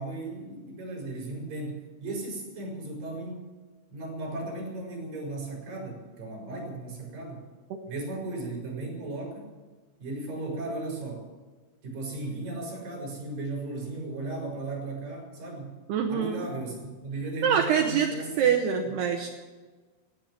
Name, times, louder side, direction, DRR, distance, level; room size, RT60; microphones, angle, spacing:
voice 1, 0.0-3.5 3.9-7.4 7.9-9.5 10.0-11.3 11.8-15.8 16.1-18.6 18.8-18.9, right 2 dB, 45° right, -2 dB, 6.2 m, -36 dB
voice 2, 15.9-16.5 17.4-19.3, right 7 dB, 75° right, 3 dB, 2.5 m, -25 dB
16.5 x 11.0 x 7.5 m, 1.4 s
omnidirectional pair, 5.8 m